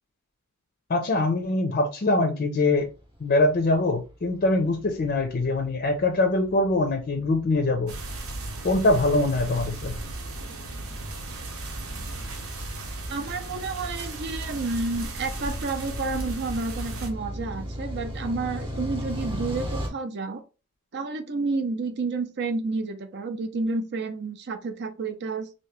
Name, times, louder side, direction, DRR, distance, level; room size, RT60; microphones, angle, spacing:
voice 1, 0.9-2.9 3.2-7.9 8.6-9.9, left 2 dB, 40° left, 0.5 m, -23 dB
sound 1, 2.9-19.9, equal, 25° right, 0.8 m, -38 dB
sound 2, 7.9-17.1, right 2 dB, 70° right, 0.9 m, -36 dB
voice 2, 13.1-20.4 20.9-25.5, right 3 dB, 50° right, 0.6 m, -30 dB
2.9 x 2.7 x 3.2 m
head